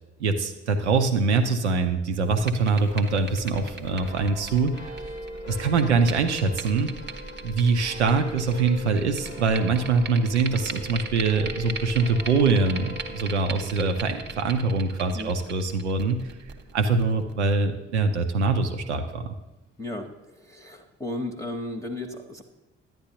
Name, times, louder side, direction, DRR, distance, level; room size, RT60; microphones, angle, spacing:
voice 1, 0.2-4.7 5.5-6.9 7.4-16.2 16.7-19.3, right 4 dB, 85° right, 6 dB, 0.6 m, -23 dB
sound 1, 2.2-17.5, right 4 dB, 30° right, 0.8 m, -39 dB
sound 2, 2.8-19.6, left 2 dB, 90° left, 1.0 m, -42 dB
voice 2, 19.8-22.4, left 1 dB, 10° left, 4 dB, 0.8 m, -34 dB
10.5 x 9.5 x 2.9 m, 1.0 s
figure-of-eight pair, 40°, 33 cm